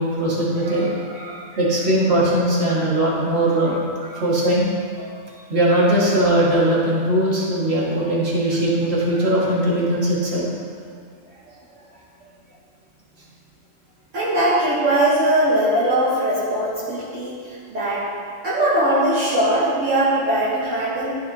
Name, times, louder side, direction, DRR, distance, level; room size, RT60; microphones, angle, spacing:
voice 1, 0.0-0.9 1.6-3.8 4.2-4.7 5.5-10.5, right 1 dB, 50° right, -6 dB, 2.0 m, -19 dB
voice 2, 0.6-1.6 2.7-2.8 4.1-4.2 5.0-5.4 14.1-18.0 18.4-21.2, right 1 dB, 70° right, -10 dB, 1.6 m, -21 dB
13.5 x 5.0 x 2.8 m, 2.2 s
omnidirectional pair, 1.4 m